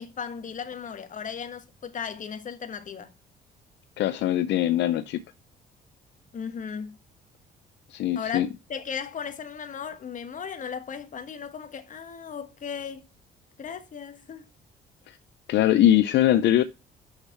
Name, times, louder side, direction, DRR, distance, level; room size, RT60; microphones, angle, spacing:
voice 1, 0.0-3.1 6.3-7.0 8.1-13.1 13.6-14.5, left 7 dB, 45° left, 1.4 m, -36 dB
voice 2, 4.0-5.2 7.9-8.5 15.1-15.2 15.5-16.6, left 12 dB, 70° left, 0.6 m, -21 dB
6.5 x 6.5 x 5.7 m
cardioid pair, 90°, 19 cm